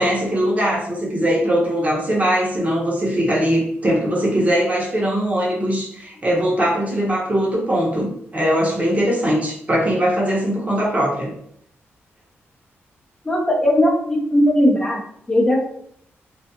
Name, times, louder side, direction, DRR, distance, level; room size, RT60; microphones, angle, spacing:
voice 1, 0.0-11.3, equal, 30° right, -3 dB, 0.8 m, -20 dB
voice 2, 13.2-15.0 15.3-15.7, equal, 15° left, -3 dB, 0.6 m, -18 dB
2.4 x 2.3 x 2.7 m, 0.68 s
cardioid pair, 90°, 5 cm